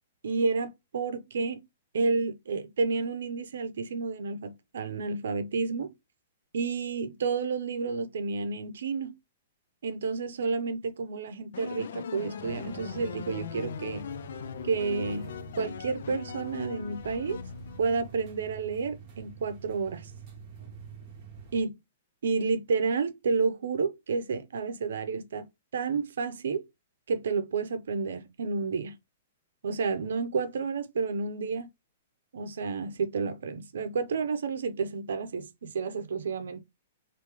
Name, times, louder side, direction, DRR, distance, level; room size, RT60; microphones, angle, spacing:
voice 1, 0.2-1.7 1.9-5.9 6.5-9.2 9.8-14.1 14.6-17.4 17.8-20.1 21.5-21.8 22.2-25.5 25.7-26.7 27.1-29.0 29.6-31.7 32.3-36.6, right 4 dB, 85° right, 0.6 m, -30 dB
sound 1, 11.5-18.2, left 7 dB, 65° left, 0.3 m, -40 dB
sound 2, 12.4-21.6, right 6 dB, 25° right, 0.9 m, -47 dB
3.0 x 2.6 x 3.4 m
hypercardioid pair, 175°, 0 cm